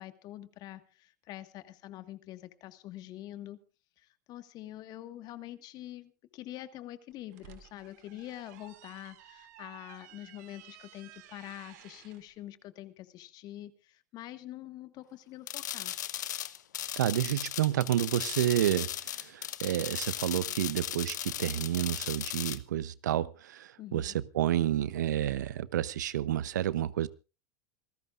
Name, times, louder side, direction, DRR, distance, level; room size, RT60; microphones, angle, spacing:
voice 1, 0.0-3.6 4.0-15.9 23.8-24.1, left 14 dB, 45° left, 1.7 m, -45 dB
sound 1, 7.1-12.2, right 12 dB, 70° right, 2.6 m, -54 dB
sound 2, 15.5-22.6, left 11 dB, 90° left, 1.1 m, -37 dB
voice 2, 17.0-27.1, right 12 dB, 90° right, 0.8 m, -30 dB
27.0 x 14.0 x 2.5 m
supercardioid pair, 115°, 9 cm